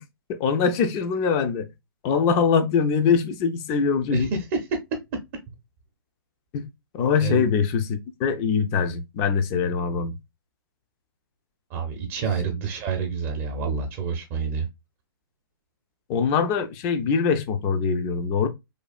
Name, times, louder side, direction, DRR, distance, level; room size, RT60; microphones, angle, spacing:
voice 1, 0.3-1.7 2.0-4.3 6.5-6.7 6.9-10.2 16.1-18.5, left 6 dB, 25° left, 0.4 m, -23 dB
voice 2, 11.7-14.7, right 5 dB, 35° right, 0.6 m, -28 dB
3.2 x 2.3 x 2.2 m
figure-of-eight pair, 125°, 12 cm